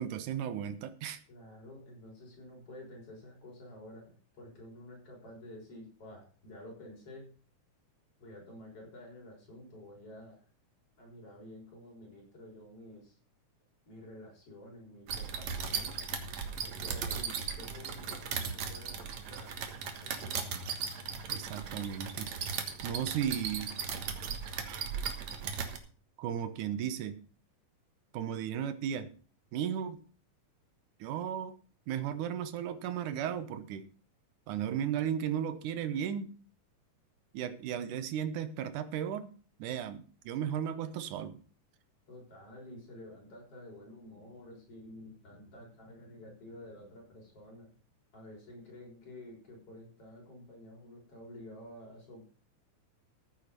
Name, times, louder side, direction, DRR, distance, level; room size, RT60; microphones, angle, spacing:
voice 1, 0.0-1.2 21.3-22.3 22.8-23.7 24.7-24.9 26.2-27.2 28.1-29.1 29.5-30.0 31.0-31.6 31.9-33.9 34.5-36.3 37.3-39.3 39.6-41.4, right 9 dB, 80° right, 11 dB, 2.6 m, -35 dB
voice 2, 1.3-7.3 8.2-10.5 11.0-13.2 13.9-16.0 16.6-19.6 20.0-20.5 42.1-47.7 48.1-52.3, left 1 dB, 45° left, -1 dB, 6.9 m, -50 dB
sound 1, 15.1-25.8, right 6 dB, 65° right, 2.6 m, -37 dB
14.5 x 8.2 x 5.3 m, 0.40 s
omnidirectional pair, 3.5 m